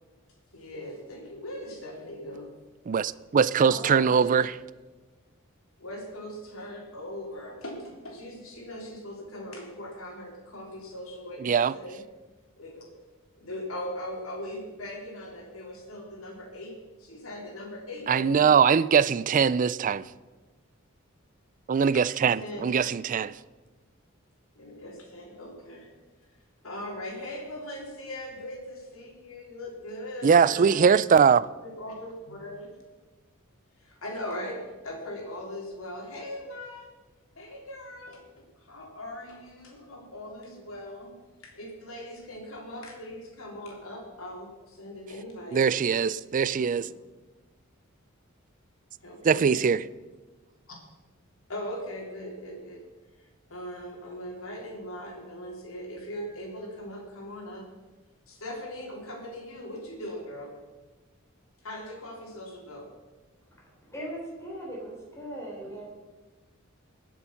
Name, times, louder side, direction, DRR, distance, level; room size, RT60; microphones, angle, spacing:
voice 1, 0.5-2.5 3.6-4.3 5.8-12.0 12.6-12.9 13.4-18.6 21.9-22.0 22.4-22.7 24.5-25.9 26.6-30.9 31.6-32.7 33.8-36.9 37.4-41.1 41.4-45.6 46.5-46.8 49.0-49.5 50.7-50.8 51.5-52.8 53.2-57.7 58.3-60.5 61.6-62.9, left 1 dB, 80° left, 3.5 m, -40 dB
voice 2, 2.9-4.5 11.4-11.7 18.1-20.1 21.7-23.4 30.2-31.5 45.5-46.9 49.2-49.8, right 6 dB, 40° right, 0.4 m, -22 dB
voice 3, 63.9-65.9, right 1 dB, 15° left, 4.0 m, -38 dB
21.0 x 7.0 x 5.8 m
head